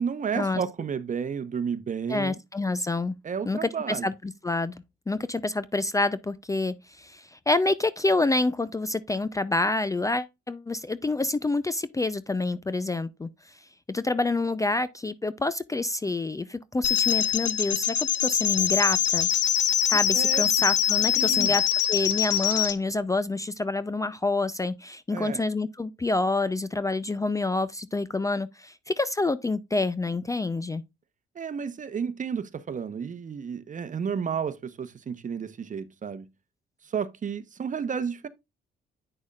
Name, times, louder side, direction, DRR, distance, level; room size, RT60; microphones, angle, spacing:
voice 1, 0.0-2.4 3.2-4.1 19.9-20.5 21.2-21.5 25.1-25.4 31.3-36.3 36.9-38.3, right 6 dB, 40° right, 0.9 m, -32 dB
voice 2, 2.1-3.2 3.5-13.6 13.9-19.3 19.9-21.6 21.9-30.8, left 2 dB, 15° left, 0.5 m, -27 dB
sound 1, 16.8-22.8, left 11 dB, 70° left, 0.7 m, -24 dB
8.8 x 6.2 x 2.4 m
cardioid pair, 90°, 20 cm